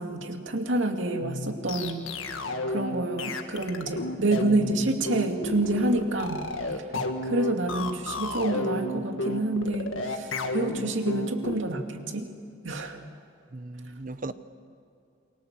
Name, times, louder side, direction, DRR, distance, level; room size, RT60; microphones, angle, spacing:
voice 1, 0.0-2.1 2.7-12.3 12.6-13.0, right 2 dB, 75° right, 2.5 m, -28 dB
sound 1, 1.2-11.6, left 2 dB, 90° left, 1.8 m, -32 dB
voice 2, 13.5-14.3, right 2 dB, 40° right, 0.9 m, -37 dB
28.0 x 24.0 x 7.6 m
head